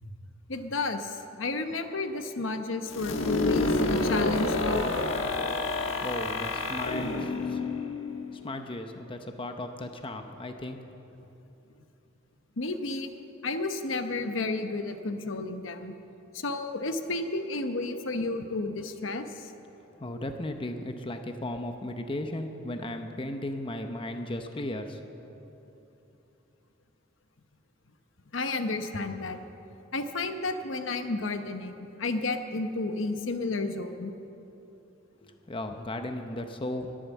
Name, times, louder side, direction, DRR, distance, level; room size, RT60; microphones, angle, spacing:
voice 1, 0.5-4.9 12.6-13.1 13.4-15.9 16.3-19.5 28.3-29.4 29.9-34.1, left 3 dB, 75° left, 7 dB, 0.9 m, -32 dB
sound 1, 2.9-8.6, left 2 dB, 90° left, 1.3 m, -29 dB
voice 2, 6.0-7.6 8.3-10.8 20.0-25.0 35.2-37.0, left 1 dB, 25° left, 6 dB, 0.8 m, -36 dB
20.5 x 8.8 x 7.2 m, 3.0 s
head